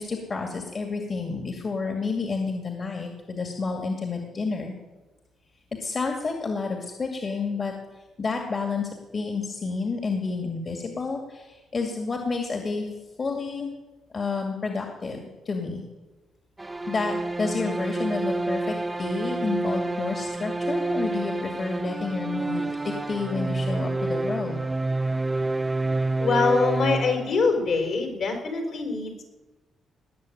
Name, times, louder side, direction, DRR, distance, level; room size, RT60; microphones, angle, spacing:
voice 1, 0.0-4.7 5.8-7.7 8.2-12.9 13.2-13.7 14.1-15.8 16.9-24.6, left 4 dB, 45° left, 2 dB, 2.3 m, -30 dB
sound 1, 16.6-27.7, right 2 dB, 20° right, 0.6 m, -28 dB
voice 2, 26.2-29.2, left 4 dB, 70° left, 3 dB, 4.4 m, -24 dB
19.0 x 6.7 x 9.3 m, 1.1 s
cardioid pair, 85°, 0 cm